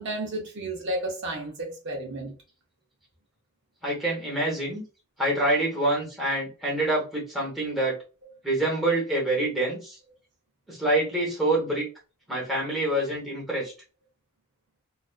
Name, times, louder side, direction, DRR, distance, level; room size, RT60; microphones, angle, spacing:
voice 1, 0.0-2.3, right 1 dB, 50° right, 0.6 m, -32 dB
voice 2, 3.8-4.8 5.2-7.9 8.4-10.0 10.7-11.9 12.3-13.7, right 1 dB, ahead, 0.9 m, -26 dB
2.3 x 2.2 x 2.3 m
head